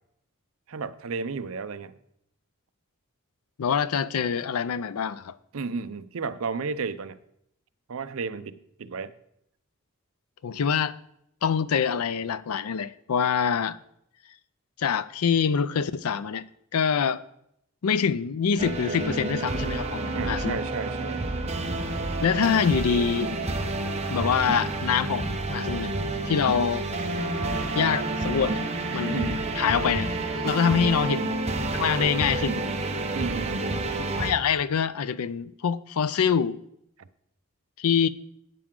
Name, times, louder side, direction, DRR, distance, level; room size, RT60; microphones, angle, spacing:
voice 1, 0.7-2.0 5.5-7.2 7.9-9.1 20.1-21.3 29.1-29.4 30.6-30.9 33.1-33.7, right 4 dB, 70° right, 0.6 m, -33 dB
voice 2, 3.6-5.4 10.4-11.0 11.4-13.8 14.8-16.4 16.7-17.2 17.8-20.6 22.2-23.3 24.1-25.9 26.3-26.9 27.7-28.6 28.9-32.6 34.0-36.6 37.8-38.1, left 7 dB, 90° left, 0.5 m, -25 dB
sound 1, 18.6-34.3, right 2 dB, 30° right, 1.0 m, -29 dB
12.0 x 8.5 x 3.7 m
head